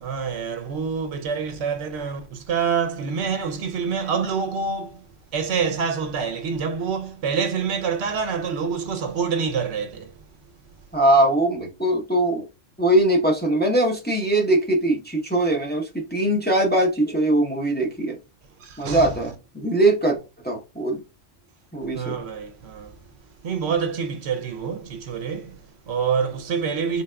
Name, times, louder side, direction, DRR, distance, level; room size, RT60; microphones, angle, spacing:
voice 1, 0.0-5.1 5.3-10.1 18.6-19.2 21.8-23.0 23.4-27.0, right 6 dB, 65° right, 0.9 m, -26 dB
voice 2, 10.9-12.5 12.8-18.2 18.8-20.2 20.4-21.0 21.7-22.1, right 1 dB, 10° left, 0.6 m, -21 dB
4.0 x 3.5 x 2.2 m
omnidirectional pair, 1.3 m